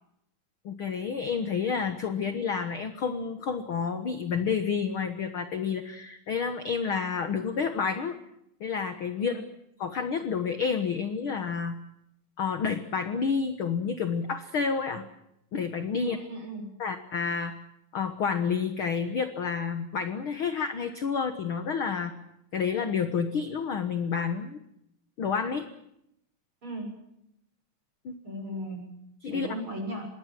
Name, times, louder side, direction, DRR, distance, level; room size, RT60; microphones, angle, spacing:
voice 1, 0.6-8.2 8.6-9.4 9.8-11.8 12.4-15.0 15.5-16.2 16.8-17.5 17.9-22.1 22.5-24.6 25.2-25.7 28.0-28.1 29.2-29.5, left 6 dB, 55° left, 9 dB, 1.6 m, -29 dB
voice 2, 16.0-16.6 26.6-26.9 28.2-28.8 29.3-30.1, right 1 dB, 35° right, 4 dB, 7.4 m, -37 dB
26.0 x 21.5 x 7.7 m, 0.78 s
omnidirectional pair, 4.0 m